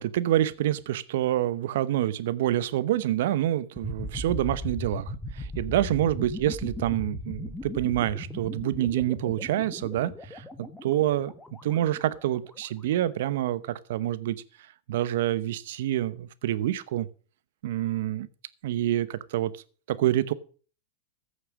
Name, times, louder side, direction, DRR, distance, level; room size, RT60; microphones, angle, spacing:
voice 1, 0.0-11.3 11.6-14.4 14.9-17.1 17.6-18.3 18.6-19.6 19.9-20.3, right 13 dB, 65° right, 15 dB, 0.9 m, -27 dB
sound 1, 3.8-12.6, left 1 dB, 10° left, 1.5 m, -38 dB
15.0 x 6.6 x 6.1 m, 0.41 s
hypercardioid pair, 105°, 0 cm